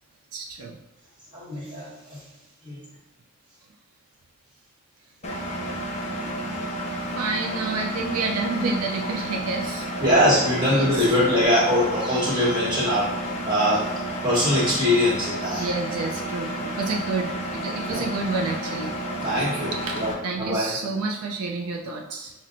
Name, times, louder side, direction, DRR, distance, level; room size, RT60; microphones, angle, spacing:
voice 1, 0.3-0.8 7.2-10.3 10.6-11.2 15.5-18.9 19.7-22.3, right 3 dB, 75° right, 1 dB, 0.4 m, -29 dB
voice 2, 1.3-2.2 2.6-2.8 10.0-13.1 13.5-13.9 14.2-15.7 17.9-18.0 19.2-20.7, equal, 20° right, -8 dB, 1.2 m, -22 dB
Engine, 5.2-20.1, right 1 dB, 30° left, 0.5 m, -31 dB
5.7 x 2.1 x 2.5 m, 0.97 s
head